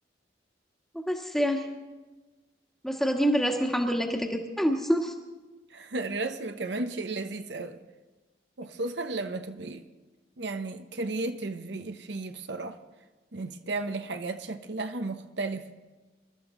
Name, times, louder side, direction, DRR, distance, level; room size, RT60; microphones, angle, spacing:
voice 1, 1.1-1.6 2.8-5.1, equal, ahead, 1.5 m, -26 dB
voice 2, 5.7-7.8 8.6-9.8 10.4-12.8 13.3-15.7, right 2 dB, 70° right, 0.9 m, -34 dB
26.0 x 13.0 x 3.9 m
head